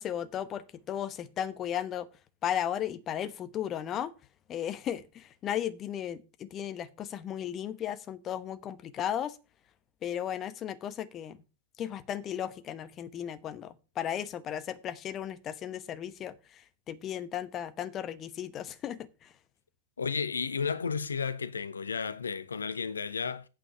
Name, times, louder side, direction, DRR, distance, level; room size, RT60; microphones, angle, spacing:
voice 1, 0.0-2.1 2.4-4.1 4.5-9.4 10.0-11.4 11.8-19.3, left 10 dB, 30° left, 1.0 m, -35 dB
voice 2, 20.0-23.4, left 5 dB, 75° left, 0.9 m, -33 dB
8.8 x 5.0 x 7.5 m
figure-of-eight pair, 100°, 0 cm